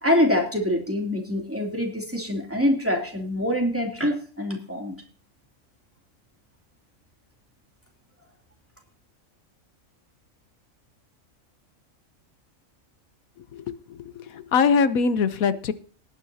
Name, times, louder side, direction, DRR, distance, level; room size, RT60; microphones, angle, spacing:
voice 1, 0.0-4.9, left 1 dB, 10° right, 1 dB, 2.9 m, -25 dB
voice 2, 13.5-15.7, left 5 dB, 90° left, 13 dB, 1.3 m, -23 dB
19.0 x 9.7 x 2.8 m, 0.42 s
omnidirectional pair, 1.4 m